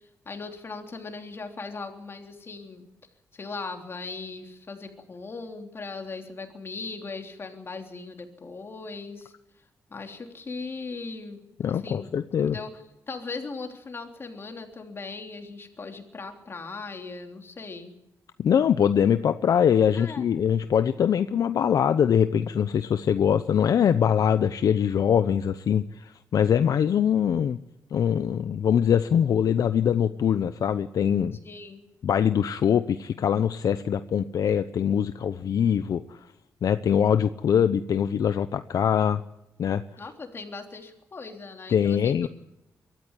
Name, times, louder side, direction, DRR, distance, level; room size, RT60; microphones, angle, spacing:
voice 1, 0.2-2.9 3.3-9.3 9.9-11.4 11.7-12.1 12.4-12.8 13.1-17.9 19.9-20.2 31.4-31.8 40.0-42.1, left 4 dB, 35° left, 4 dB, 3.4 m, -38 dB
voice 2, 11.6-12.6 18.4-27.6 27.9-31.4 32.0-36.2 36.6-39.2 39.6-39.8 41.7-42.3, left 8 dB, 65° left, 11 dB, 0.8 m, -23 dB
23.0 x 14.0 x 9.8 m, 0.91 s
cardioid pair, 120°, 7 cm